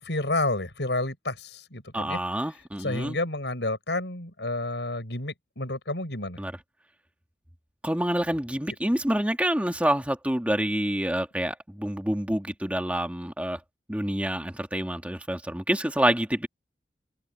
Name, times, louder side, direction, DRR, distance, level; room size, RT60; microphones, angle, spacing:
voice 1, 0.0-2.2 2.8-6.4, left 2 dB, 90° left, 6.9 m, -30 dB
voice 2, 1.9-3.2 6.4-6.5 7.8-13.6 13.9-16.5, right 1 dB, 10° right, 1.7 m, -27 dB
open air
head